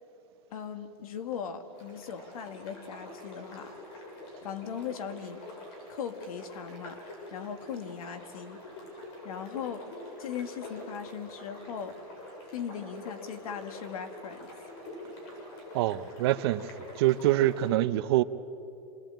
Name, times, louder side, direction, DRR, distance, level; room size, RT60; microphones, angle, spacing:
voice 1, 0.5-3.7 4.4-5.4 5.9-7.0 7.3-8.7 9.2-9.9 10.2-12.0 12.5-14.5, left 7 dB, 75° left, 2.0 m, -39 dB
sound 1, 1.7-17.7, left 1 dB, 45° left, 7.1 m, -46 dB
voice 2, 15.7-16.7 17.0-18.2, right 14 dB, 45° right, 0.7 m, -25 dB
27.5 x 20.0 x 9.0 m
supercardioid pair, 170°, 19 cm